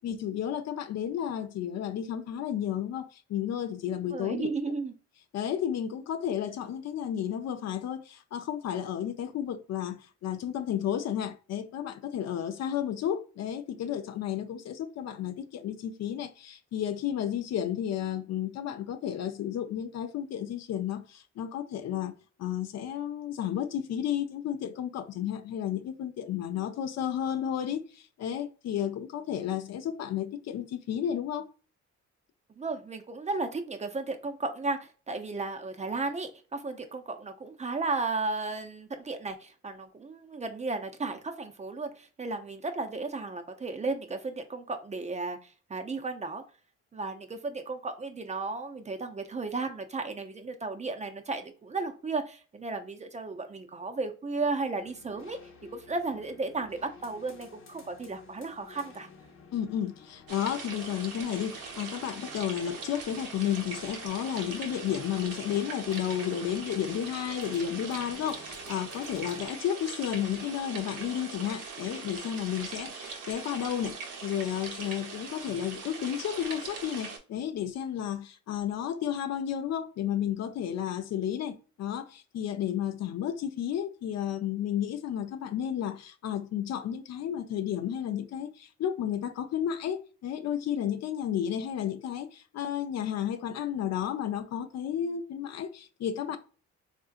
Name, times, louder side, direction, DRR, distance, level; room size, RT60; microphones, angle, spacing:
voice 1, 0.0-4.5 5.3-22.1 22.4-31.5 59.5-96.4, left 10 dB, 60° left, 0.5 m, -32 dB
voice 2, 4.1-4.9 32.6-46.4 46.9-55.4 55.7-59.1, right 3 dB, 25° right, 0.4 m, -34 dB
sound 1, 54.8-69.5, left 4 dB, 45° left, 0.9 m, -53 dB
sound 2, 60.3-77.2, right 5 dB, 90° right, 0.9 m, -41 dB
3.7 x 2.6 x 2.4 m
cardioid pair, 90°, 30 cm